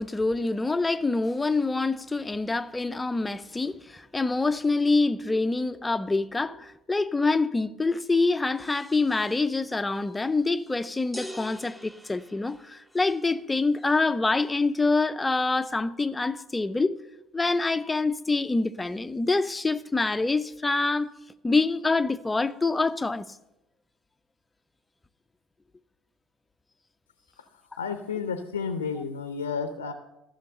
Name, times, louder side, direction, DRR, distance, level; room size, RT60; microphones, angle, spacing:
voice 1, 0.0-17.0 17.3-21.1 21.4-23.3, left 3 dB, 15° left, 0.5 m, -26 dB
sound 1, 11.1-13.2, equal, 5° right, 0.9 m, -43 dB
voice 2, 27.8-29.9, left 5 dB, 85° left, 0.6 m, -31 dB
14.0 x 6.4 x 6.7 m
hypercardioid pair, 60°, 0 cm